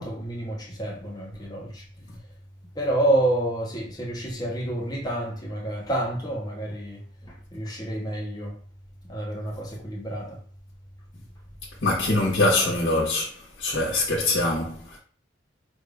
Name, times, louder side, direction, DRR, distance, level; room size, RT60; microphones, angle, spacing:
voice 1, 0.0-1.9 2.7-8.6 9.0-10.4, right 1 dB, 20° left, 0.9 m, -29 dB
voice 2, 11.8-13.3 13.6-15.0, left 2 dB, 70° left, 1.2 m, -23 dB
5.2 x 2.5 x 3.4 m
head